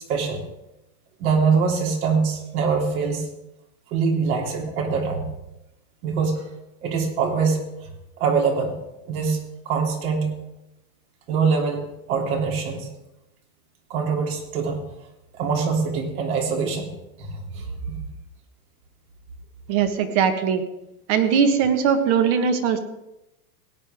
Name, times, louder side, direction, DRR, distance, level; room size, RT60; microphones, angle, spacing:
voice 1, 0.1-0.4 1.2-3.3 3.9-5.3 6.0-6.5 6.8-7.9 8.2-8.7 9.1-10.3 11.3-12.9 13.9-14.8 15.3-16.9 17.2-18.1, right 5 dB, 65° right, 0 dB, 3.2 m, -24 dB
voice 2, 19.7-20.6 21.1-22.8, right 7 dB, 45° right, 8 dB, 1.4 m, -20 dB
17.5 x 9.0 x 3.6 m, 0.91 s
supercardioid pair, 145°, 47 cm